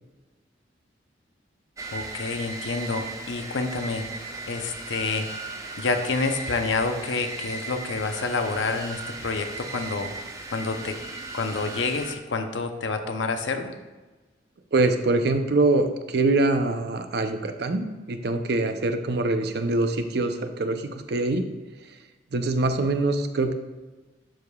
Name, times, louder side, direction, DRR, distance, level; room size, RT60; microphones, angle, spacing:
sound 1, 1.8-12.2, right 3 dB, 15° right, 0.6 m, -37 dB
voice 1, 1.9-4.0 4.5-5.3 5.8-10.1 10.5-11.0 11.3-13.7, left 3 dB, 85° left, 6 dB, 0.7 m, -28 dB
voice 2, 14.7-21.5 22.3-23.5, right 2 dB, 60° right, 7 dB, 0.6 m, -24 dB
12.0 x 4.8 x 2.3 m, 1.2 s
head